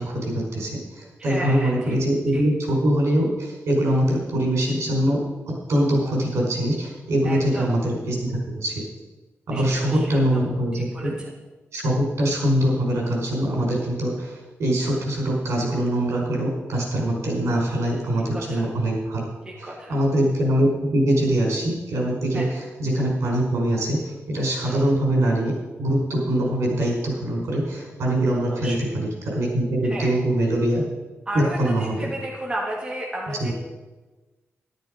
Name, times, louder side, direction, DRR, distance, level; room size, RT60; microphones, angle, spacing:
voice 1, 0.0-5.2 5.5-8.8 9.5-11.1 11.7-19.2 19.6-30.8 31.3-32.1 33.3-33.5, right 1 dB, 80° right, -1 dB, 5.3 m, -23 dB
voice 2, 1.2-2.0 2.3-2.4 7.2-7.7 9.5-10.4 10.9-11.1 18.3-18.7 19.5-19.9 22.3-22.5 24.7-24.8 28.5-28.9 29.8-30.1 31.3-33.5, right 1 dB, 15° right, -3 dB, 2.6 m, -33 dB
13.0 x 12.0 x 5.3 m, 1.2 s
wide cardioid pair, 170°, 5 cm